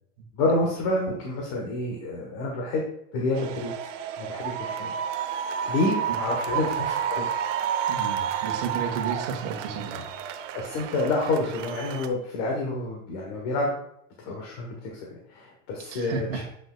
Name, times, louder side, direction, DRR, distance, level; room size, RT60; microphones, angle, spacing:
voice 1, 0.3-2.8 3.1-3.9 4.2-4.9 5.4-7.3 10.5-13.8 14.2-16.4, left 2 dB, 45° left, -1 dB, 1.2 m, -28 dB
sound 1, 3.3-12.1, right 8 dB, 90° right, 0.9 m, -30 dB
voice 2, 7.9-10.1 15.8-16.4, right 6 dB, 70° right, 3 dB, 1.5 m, -33 dB
7.9 x 6.0 x 2.3 m, 0.73 s
supercardioid pair, 170°, 36 cm